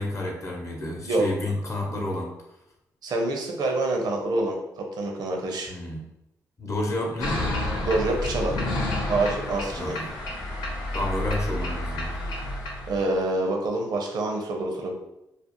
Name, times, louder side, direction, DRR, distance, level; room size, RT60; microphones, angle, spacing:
voice 1, 0.0-2.3 5.7-6.0 6.6-7.4 9.8-10.1 10.9-12.2, left 1 dB, 45° left, 0 dB, 0.7 m, -30 dB
voice 2, 3.0-5.7 7.9-8.6 9.1-10.0 12.9-14.9, right 2 dB, 70° right, 1 dB, 0.6 m, -26 dB
sound 1, 7.2-13.0, left 1 dB, 85° left, 0.6 m, -30 dB
2.4 x 2.0 x 2.9 m, 0.87 s
supercardioid pair, 50°, 7 cm